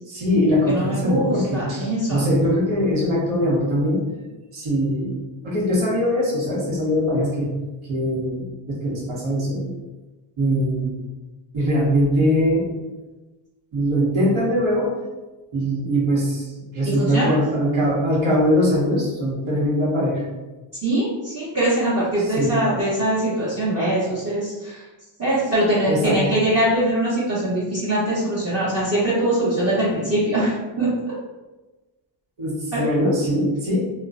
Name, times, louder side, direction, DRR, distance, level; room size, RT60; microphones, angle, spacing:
voice 1, 0.1-4.0 4.5-5.2 5.4-7.5 7.8-9.7 10.4-10.9 11.5-12.7 13.7-14.9 15.5-20.2 22.2-22.5 25.9-26.2 32.4-33.8, equal, 70° right, -5 dB, 1.2 m, -21 dB
voice 2, 0.7-2.3 16.8-17.3 20.8-24.8 25.2-30.9 32.7-32.9, right 1 dB, 30° right, -10 dB, 1.0 m, -22 dB
2.9 x 2.2 x 2.4 m, 1.2 s
cardioid pair, 80°, 50 cm